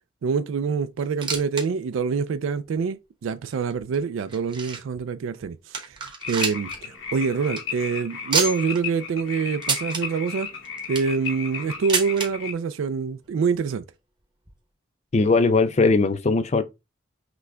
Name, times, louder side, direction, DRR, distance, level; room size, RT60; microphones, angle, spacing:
voice 1, 0.2-10.5 10.9-13.8, right 5 dB, 90° right, 0.3 m, -26 dB
sound 1, 1.0-1.7 1.9-2.0 2.7-2.8 3.5-5.0 5.4-5.5 5.7-6.8 7.1-7.2 7.4-7.6 8.3-8.8 9.6-10.0 10.6-11.2 11.9-12.3 13.2-13.3 13.5-13.6 14.5-14.6, right 4 dB, 25° right, 1.0 m, -27 dB
sound 2, 6.2-12.5, left 6 dB, 75° left, 1.0 m, -34 dB
voice 2, 15.1-16.6, left 3 dB, 35° left, 0.4 m, -19 dB
6.0 x 2.2 x 3.3 m
head